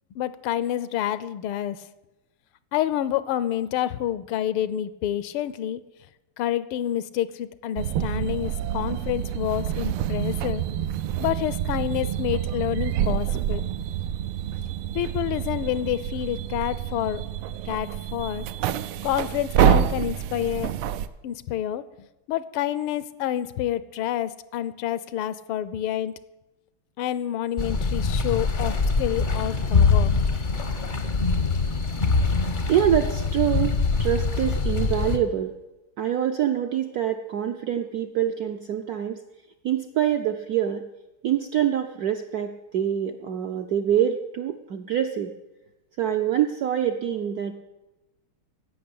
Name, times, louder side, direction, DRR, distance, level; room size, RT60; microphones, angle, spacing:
voice 1, 0.1-1.9 2.7-5.8 6.4-10.6 11.2-13.6 14.9-17.2 17.7-20.7 21.2-21.8 22.3-26.1 27.0-30.2, left 11 dB, 80° left, 16 dB, 1.5 m, -28 dB
sound 1, 7.8-21.1, right 10 dB, 90° right, 1.5 m, -27 dB
sound 2, 27.6-35.2, left 4 dB, 55° left, 0.5 m, -23 dB
voice 2, 32.7-35.5 36.0-39.2 39.6-40.8 41.2-45.3 46.0-47.5, right 10 dB, 75° right, 5 dB, 0.8 m, -25 dB
16.0 x 6.0 x 8.6 m, 1.0 s
omnidirectional pair, 2.3 m